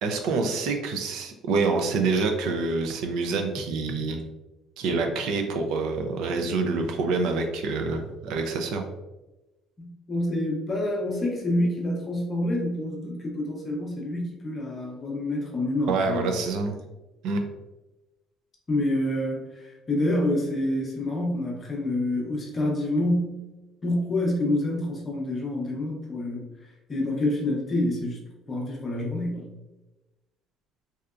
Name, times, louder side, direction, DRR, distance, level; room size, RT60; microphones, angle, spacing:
voice 1, 0.0-4.2 4.8-8.8 15.9-16.8 17.2-17.5, right 4 dB, 70° right, 4 dB, 0.4 m, -26 dB
voice 2, 9.8-16.3 18.7-23.4 23.8-26.4 26.9-28.2 28.5-29.5, left 1 dB, 20° left, -1 dB, 0.7 m, -27 dB
3.4 x 2.7 x 2.4 m, 1.0 s
cardioid pair, 170°, 0 cm